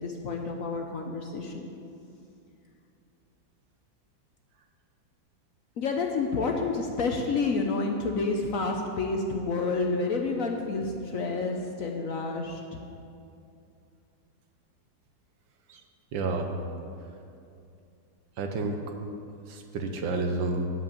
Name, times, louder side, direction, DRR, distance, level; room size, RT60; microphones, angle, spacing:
voice 1, 0.0-1.7 5.8-12.8, left 3 dB, 60° left, 2 dB, 1.0 m, -29 dB
voice 2, 16.1-16.5 18.4-18.8 19.5-20.7, right 3 dB, 75° right, 5 dB, 1.7 m, -30 dB
8.2 x 7.8 x 8.9 m, 2.5 s
omnidirectional pair, 2.1 m